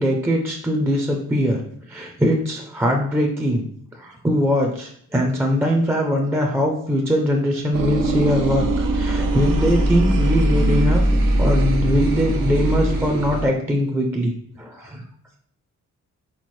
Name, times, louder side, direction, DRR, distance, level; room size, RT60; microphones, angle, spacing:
voice 1, 0.0-1.6 1.9-3.6 3.9-11.0 11.4-14.3 14.6-15.0, equal, 10° right, 1 dB, 0.4 m, -21 dB
sound 1, 7.7-13.5, right 1 dB, 90° right, 0.8 m, -20 dB
4.3 x 4.0 x 3.1 m, 0.63 s
wide cardioid pair, 170°, 32 cm